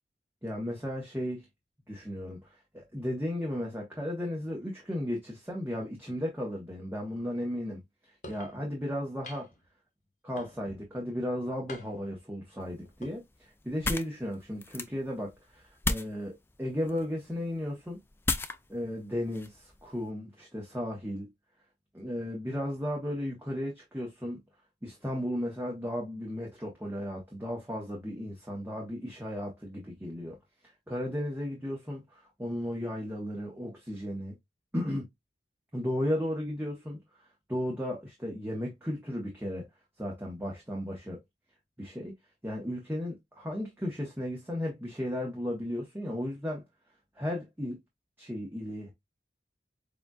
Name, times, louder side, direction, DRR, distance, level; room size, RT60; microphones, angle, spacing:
voice 1, 0.4-1.4 1.9-2.5 2.7-7.8 8.3-9.5 10.2-18.0 18.7-21.3 21.9-24.4 24.8-30.3 30.9-34.3 34.7-35.1 35.7-37.0 37.5-39.7 40.0-41.2 41.8-42.1 42.4-46.6 47.2-47.8 48.2-48.9, left 1 dB, 10° right, 1.1 m, -35 dB
sound 1, 8.2-8.5 9.2-9.7 10.4-10.9 11.7-12.2 12.9-13.2, left 1 dB, 40° left, 1.1 m, -46 dB
sound 2, 12.6-20.1, left 2 dB, 15° left, 0.3 m, -37 dB
6.7 x 2.5 x 2.4 m
head